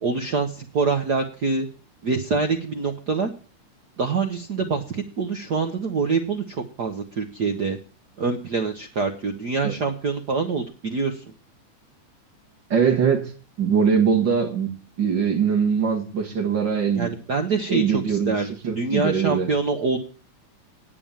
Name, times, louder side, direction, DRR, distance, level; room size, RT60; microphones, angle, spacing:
voice 1, 0.0-1.7 2.0-3.3 4.0-7.8 8.2-11.2 16.9-18.5 18.7-20.0, right 4 dB, 65° right, 4 dB, 1.0 m, -25 dB
voice 2, 12.7-13.3 13.6-14.7 15.0-17.1 17.7-19.5, right 6 dB, 45° right, 1 dB, 2.2 m, -22 dB
9.3 x 6.9 x 8.8 m, 0.39 s
omnidirectional pair, 3.4 m